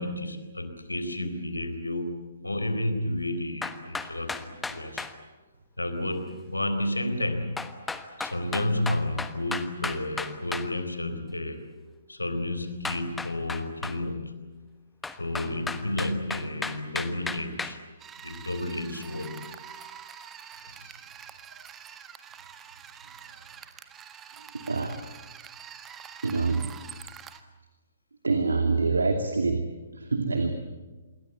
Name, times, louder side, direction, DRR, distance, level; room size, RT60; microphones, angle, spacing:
voice 1, 0.0-5.1 5.8-7.6 8.2-11.7 12.1-14.5 15.2-17.8 18.2-19.4 20.7-20.9, left 1 dB, 80° left, 9 dB, 4.0 m, -31 dB
sound 1, 3.6-5.1 7.6-10.7 12.8-14.0 15.0-17.8, left 4 dB, 5° left, 1.2 m, -34 dB
sound 2, 18.0-27.4, right 8 dB, 15° right, 1.6 m, -46 dB
voice 2, 24.4-25.0 26.2-26.7 28.2-29.7 29.9-30.5, right 3 dB, 70° right, 6 dB, 2.6 m, -26 dB
27.5 x 22.5 x 8.3 m, 1.2 s
figure-of-eight pair, 125°, 0 cm